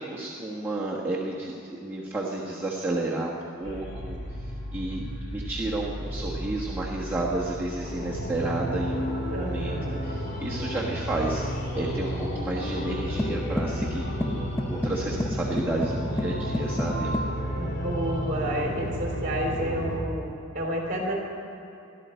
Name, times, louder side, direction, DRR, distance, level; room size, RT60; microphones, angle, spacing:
voice 1, 0.0-4.2 4.7-9.7 10.0-11.4 11.7-17.1, right 2 dB, 10° right, -6 dB, 1.3 m, -31 dB
sound 1, 3.6-20.0, equal, 55° left, 3.0 m, -32 dB
voice 2, 9.3-10.1 17.6-20.2 20.5-21.1, equal, 40° right, -1 dB, 3.4 m, -30 dB
sound 2, 13.2-17.4, left 1 dB, 15° left, 0.5 m, -32 dB
22.5 x 12.5 x 4.4 m, 2.8 s
head